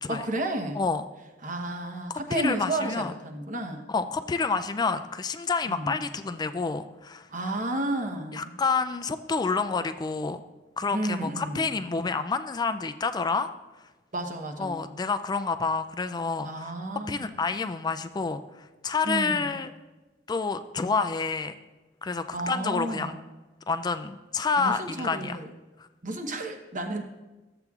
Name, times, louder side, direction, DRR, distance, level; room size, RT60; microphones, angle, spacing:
voice 1, 0.1-0.8 1.4-3.8 5.7-6.0 7.3-8.5 10.9-11.7 14.1-14.8 16.4-17.4 19.0-19.6 22.3-23.2 24.6-25.5 26.0-27.0, right 1 dB, 45° right, 4 dB, 0.9 m, -32 dB
voice 2, 0.7-1.1 2.3-3.1 3.9-7.3 8.3-10.4 10.8-13.5 14.6-16.7 17.1-19.7 20.3-21.5 22.0-23.1 23.7-25.4, left 4 dB, 20° left, 10 dB, 0.3 m, -28 dB
13.5 x 7.8 x 2.4 m, 1.1 s
head